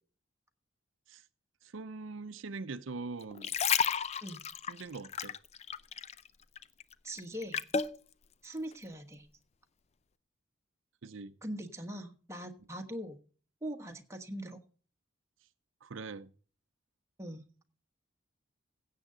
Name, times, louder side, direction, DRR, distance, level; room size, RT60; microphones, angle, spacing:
voice 1, 1.6-3.5 4.7-5.4 11.0-11.4 15.8-16.3, right 3 dB, 85° right, 0.6 m, -42 dB
sound 1, 3.2-6.3 6.6-8.0 8.6-8.7, left 6 dB, 35° left, 0.5 m, -32 dB
voice 2, 7.0-7.6 8.4-9.3 11.4-13.2 13.6-14.6 17.2-17.4, equal, 15° right, 1.3 m, -41 dB
16.5 x 7.6 x 3.8 m
head